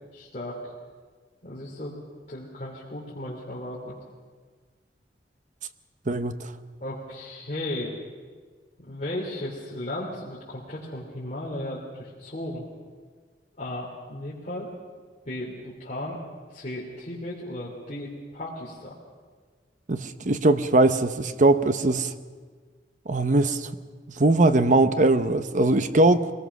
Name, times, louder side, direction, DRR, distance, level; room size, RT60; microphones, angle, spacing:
voice 1, 0.1-0.6 1.4-3.9 6.8-7.9 8.9-12.7 13.6-14.7 15.2-16.2 16.5-18.9, left 1 dB, 40° left, -6 dB, 3.3 m, -35 dB
voice 2, 6.1-6.5 19.9-22.1 23.1-23.7 24.2-26.3, right 2 dB, 45° right, 11 dB, 0.9 m, -21 dB
23.5 x 19.0 x 6.2 m, 1.5 s
head